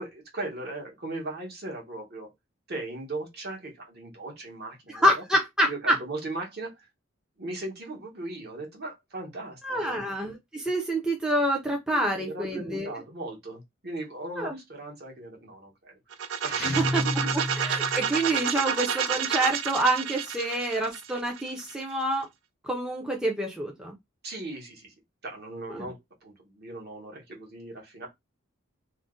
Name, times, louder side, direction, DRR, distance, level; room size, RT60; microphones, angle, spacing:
voice 1, 0.0-2.3 2.7-5.2 5.6-6.9 7.4-10.0 11.9-16.0 16.4-17.3 24.2-24.9 25.2-26.0 26.2-28.1, right 2 dB, 50° right, 1.0 m, -38 dB
voice 2, 4.9-6.0 9.6-12.9 14.4-14.6 16.6-17.0 17.6-22.3 22.6-23.9 25.7-25.9, right 1 dB, 5° right, 0.4 m, -27 dB
sound 1, 16.1-21.9, right 8 dB, 70° right, 0.4 m, -30 dB
Guitar, 16.6-18.3, left 1 dB, 55° left, 0.6 m, -31 dB
2.4 x 2.0 x 3.6 m
head